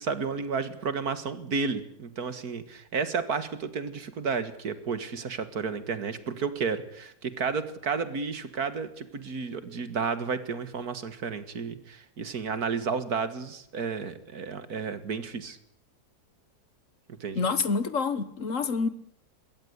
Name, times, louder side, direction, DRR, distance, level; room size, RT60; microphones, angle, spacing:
voice 1, 0.0-15.6 17.2-17.4, right 5 dB, 70° right, 12 dB, 2.2 m, -32 dB
voice 2, 17.3-18.9, left 4 dB, 55° left, 14 dB, 1.6 m, -27 dB
22.0 x 17.0 x 8.2 m, 0.69 s
omnidirectional pair, 1.7 m